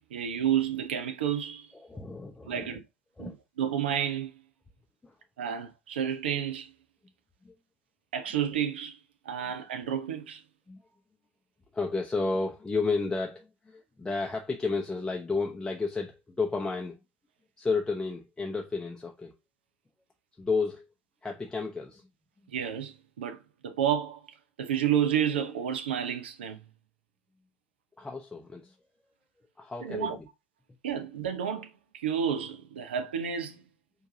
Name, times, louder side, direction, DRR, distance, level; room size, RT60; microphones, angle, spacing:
voice 1, 0.1-1.7 2.5-2.8 3.2-3.3 3.6-4.3 5.4-6.7 8.1-9.0 9.3-10.4 22.5-23.4 23.6-24.2 24.6-26.6 29.8-30.2 30.8-31.7 31.9-33.5, right 9 dB, 75° right, 0.7 m, -30 dB
voice 2, 1.7-2.8 3.2-3.3 5.0-5.2 5.5-5.6 7.4-7.5 10.7-10.8 11.7-17.0 17.6-19.4 20.4-20.9 21.2-22.1 28.0-28.7 29.6-30.3, left 4 dB, 10° left, 0.6 m, -32 dB
4.5 x 2.7 x 2.6 m
figure-of-eight pair, 70°, 6 cm